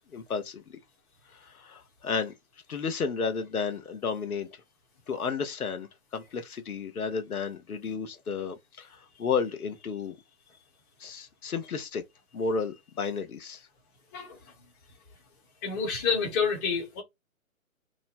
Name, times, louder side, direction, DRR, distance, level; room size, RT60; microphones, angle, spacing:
voice 1, 0.1-0.8 1.3-2.3 2.7-4.5 5.1-10.2 11.0-12.0 12.3-13.7, left 5 dB, 85° left, 1.0 m, -32 dB
voice 2, 15.6-17.0, left 6 dB, 15° left, 1.0 m, -28 dB
3.0 x 2.2 x 4.1 m
hypercardioid pair, 150°, 42 cm